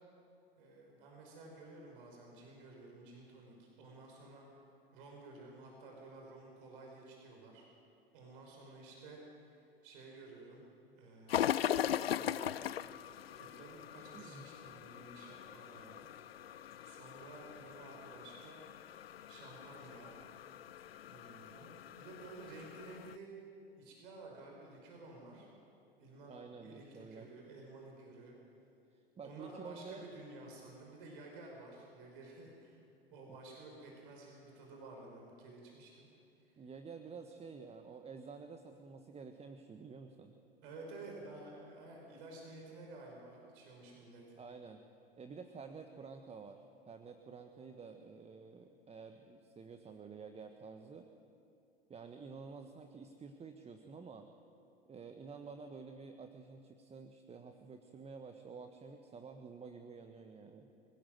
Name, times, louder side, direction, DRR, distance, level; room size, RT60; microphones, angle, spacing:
voice 1, 0.6-4.5 4.9-7.7 8.1-10.6 10.9-12.7 13.4-16.1 16.8-18.6 19.3-20.2 21.0-23.3 23.8-25.5 26.0-26.4 26.6-28.3 29.2-32.8 33.1-36.1 36.4-36.7 40.6-44.2, right 2 dB, 65° right, 0 dB, 5.7 m, -53 dB
sound 1, 11.3-23.2, left 10 dB, 80° left, 0.6 m, -40 dB
voice 2, 14.1-14.5 26.3-27.3 28.9-30.1 36.6-40.3 44.4-44.8 45.2-51.1 51.9-54.3 54.9-60.7, right 5 dB, 20° right, 6 dB, 1.4 m, -50 dB
25.0 x 16.5 x 7.8 m, 2.6 s
hypercardioid pair, 85°, 29 cm